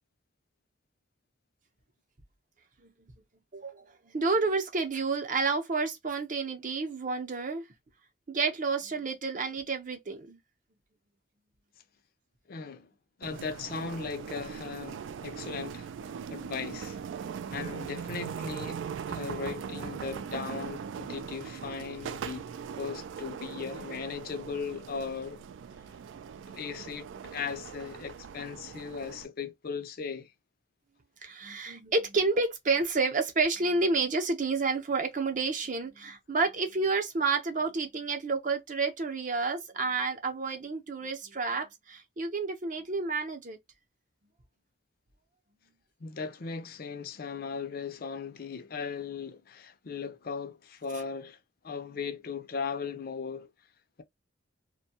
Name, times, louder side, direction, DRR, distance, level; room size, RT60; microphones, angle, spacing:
voice 1, 3.5-7.6 8.3-10.4 31.2-43.6, right 4 dB, 45° right, 0.7 m, -30 dB
voice 2, 12.5-12.9 13.2-15.9 16.3-17.0 17.5-18.8 19.1-22.4 22.8-25.4 26.5-30.3 46.0-51.4 51.6-53.5, left 5 dB, 50° left, 0.5 m, -38 dB
sound 1, 13.2-29.3, right 7 dB, 75° right, 0.3 m, -40 dB
2.6 x 2.2 x 2.7 m
head